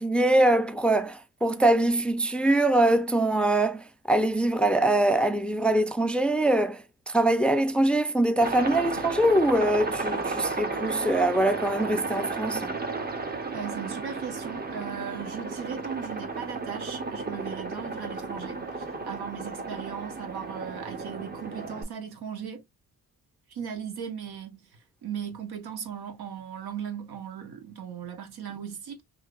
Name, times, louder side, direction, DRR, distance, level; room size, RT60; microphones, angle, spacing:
voice 1, 0.0-12.7, right 1 dB, 5° left, 0.3 m, -23 dB
Aircraft, 8.4-21.8, right 3 dB, 25° right, 0.8 m, -33 dB
voice 2, 13.5-22.6 23.5-24.6 25.0-29.0, right 7 dB, 85° right, 1.0 m, -37 dB
3.2 x 2.8 x 2.3 m
cardioid pair, 85°, 37 cm